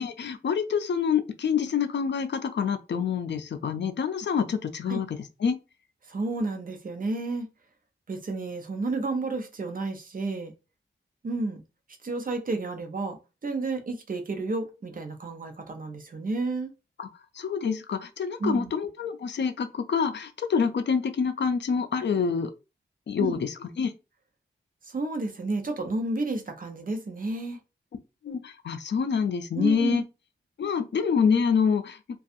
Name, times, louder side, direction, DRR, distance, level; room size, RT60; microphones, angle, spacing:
voice 1, 0.0-5.1 5.4-5.6 17.0-17.1 17.4-22.5 23.1-23.9 28.2-30.0 30.6-32.2, left 6 dB, 65° left, 0.4 m, -26 dB
voice 2, 6.1-7.5 8.1-10.5 11.2-11.6 12.0-16.7 18.4-18.7 23.2-23.3 24.9-27.6 29.5-30.0, right 3 dB, 45° right, 0.6 m, -31 dB
2.5 x 2.3 x 2.5 m
wide cardioid pair, 100°, 19 cm